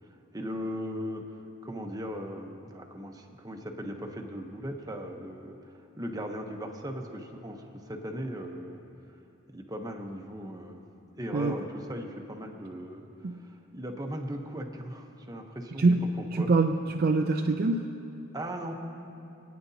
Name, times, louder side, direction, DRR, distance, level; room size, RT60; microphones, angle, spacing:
voice 1, 0.3-1.2 1.6-8.8 9.5-10.8 11.1-15.8 16.4-16.5 18.3-18.7, equal, 20° right, 3 dB, 0.9 m, -38 dB
voice 2, 15.8-17.9, right 3 dB, 45° right, 3 dB, 0.4 m, -25 dB
24.5 x 9.5 x 2.8 m, 2.8 s
head